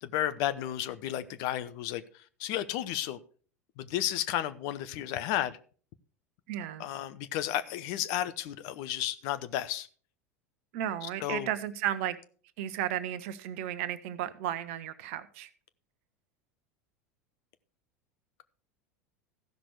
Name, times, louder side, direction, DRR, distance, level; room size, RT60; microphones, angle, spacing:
voice 1, 0.0-2.0 2.4-3.2 3.8-5.6 6.8-9.9 11.0-11.5, left 12 dB, 50° left, 0.7 m, -32 dB
voice 2, 6.5-6.9 10.7-12.2 12.6-15.5, right 11 dB, 55° right, 0.9 m, -34 dB
15.0 x 6.0 x 4.6 m
figure-of-eight pair, 80°, 8 cm